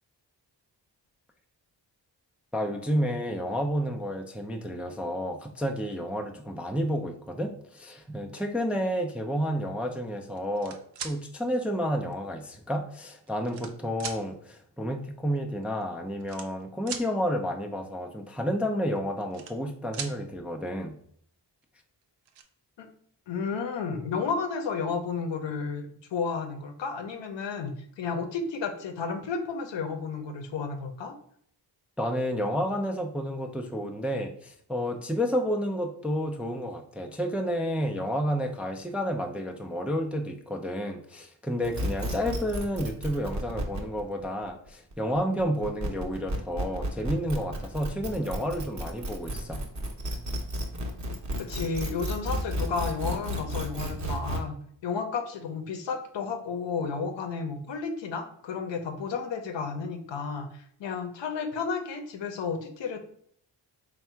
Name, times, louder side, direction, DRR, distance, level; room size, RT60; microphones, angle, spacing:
voice 1, 2.5-10.8 11.0-21.0 32.0-49.6, equal, 5° right, 3 dB, 0.3 m, -30 dB
sound 1, 10.4-11.2 12.1-12.2 13.1-13.7 14.0-14.2 15.4-15.5 15.6-15.8 16.2-17.1 19.0-19.7 19.9-20.2 21.6-21.7 22.0-22.4, right 7 dB, 65° right, 0.6 m, -39 dB
voice 2, 23.3-31.2 51.4-54.5 54.8-63.0, left 5 dB, 75° left, 6 dB, 0.7 m, -32 dB
sound 2, 41.6-54.4, equal, 40° right, 0.8 m, -32 dB
3.5 x 2.2 x 4.3 m, 0.65 s
cardioid pair, 75°, 44 cm